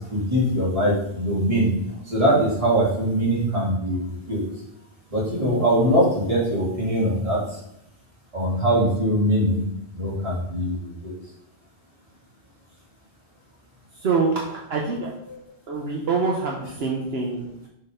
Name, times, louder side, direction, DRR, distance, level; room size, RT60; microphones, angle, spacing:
voice 1, 0.1-1.8 2.1-4.4 5.1-7.5 8.3-9.6 9.9-11.1, equal, 30° right, -6 dB, 2.6 m, -22 dB
voice 2, 14.0-15.1 15.7-17.7, right 4 dB, 70° right, -1 dB, 1.1 m, -25 dB
6.6 x 4.0 x 5.0 m, 0.79 s
omnidirectional pair, 1.1 m